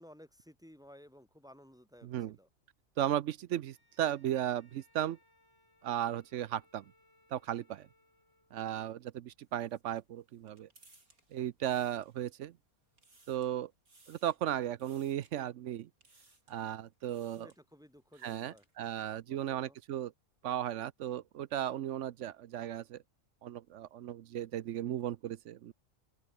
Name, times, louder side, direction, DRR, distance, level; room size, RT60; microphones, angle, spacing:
voice 1, 0.0-2.5 17.4-18.6 19.0-19.8, equal, 5° right, 2.6 m, -57 dB
voice 2, 2.0-2.3 3.0-5.2 5.8-6.8 7.3-7.9 8.5-10.7 11.3-12.5 13.3-13.7 14.1-15.9 16.5-17.5 18.2-20.1 20.4-23.0 23.4-25.7, right 11 dB, 65° right, 0.9 m, -36 dB
Bowed string instrument, 3.5-8.8, left 1 dB, 50° left, 8.2 m, -69 dB
sound 1, 9.4-12.5 12.8-13.6 13.9-14.4 14.8-15.3 16.0-16.6 17.0-17.6 18.0-18.7, right 3 dB, 85° right, 5.5 m, -64 dB
open air
omnidirectional pair, 1.5 m